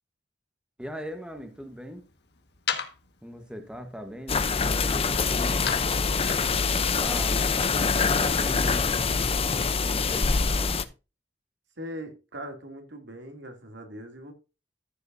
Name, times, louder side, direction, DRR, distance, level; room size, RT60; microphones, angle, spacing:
sound 1, 0.8-7.2, left 7 dB, 65° left, 1.8 m, -40 dB
voice 1, 0.8-2.0 3.2-5.7 6.7-8.9 9.8-10.9, equal, 5° right, 1.3 m, -40 dB
sound 2, 4.3-10.8, left 4 dB, 35° left, 0.7 m, -25 dB
voice 2, 11.8-14.3, equal, 75° right, 2.9 m, -40 dB
14.0 x 7.8 x 2.7 m
head